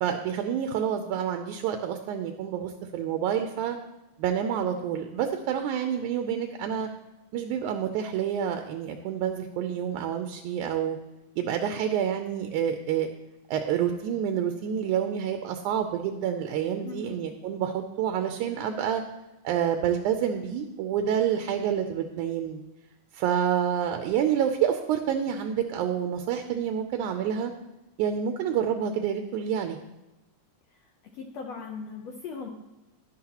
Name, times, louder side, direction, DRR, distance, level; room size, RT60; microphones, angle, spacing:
voice 1, 0.0-3.8 4.2-6.9 7.3-11.0 11.4-13.1 13.5-19.0 19.4-22.6 23.1-27.5 28.0-29.8, right 9 dB, 80° right, 6 dB, 1.9 m, -28 dB
voice 2, 16.8-17.2 30.7-32.5, left 5 dB, 70° left, 1 dB, 1.6 m, -39 dB
11.5 x 11.0 x 2.9 m, 1.0 s
omnidirectional pair, 3.8 m